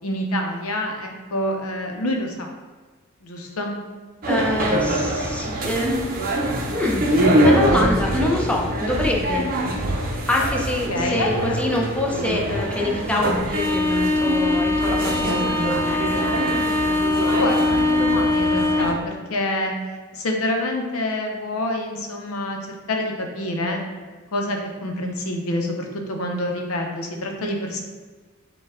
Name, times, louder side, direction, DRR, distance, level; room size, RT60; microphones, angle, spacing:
voice 1, 0.0-2.5 3.2-3.7 10.9-11.6 17.1-19.7 20.1-22.6 22.9-24.1 24.3-27.8, left 1 dB, 85° left, 2 dB, 0.7 m, -27 dB
sound 1, 4.2-18.9, equal, 45° right, 0.6 m, -22 dB
voice 2, 4.3-6.0 6.7-7.0 7.4-9.5 10.3-16.0, left 1 dB, 5° left, -2 dB, 0.5 m, -25 dB
5.4 x 2.3 x 3.5 m, 1.3 s
head